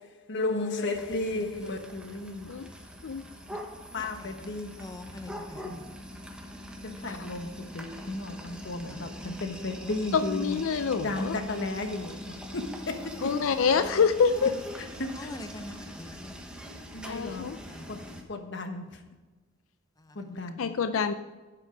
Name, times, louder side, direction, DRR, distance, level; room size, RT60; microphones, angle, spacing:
voice 1, 0.3-2.5 3.9-4.7 5.3-5.8 6.8-10.6 11.0-13.3 15.0-15.3 16.9-17.5 17.9-18.0 18.3-19.0 20.2-20.7, left 2 dB, 60° left, 1.3 m, -34 dB
sound 1, 0.9-18.2, equal, 5° right, 1.1 m, -43 dB
voice 2, 3.9-5.9 8.5-8.6 8.9-9.6 15.0-16.4 17.7-18.1, left 2 dB, 20° left, 0.6 m, -45 dB
voice 3, 10.1-11.4 13.2-14.5 17.0-17.6 20.6-21.1, left 5 dB, 80° left, 0.5 m, -26 dB
11.5 x 7.6 x 4.7 m
head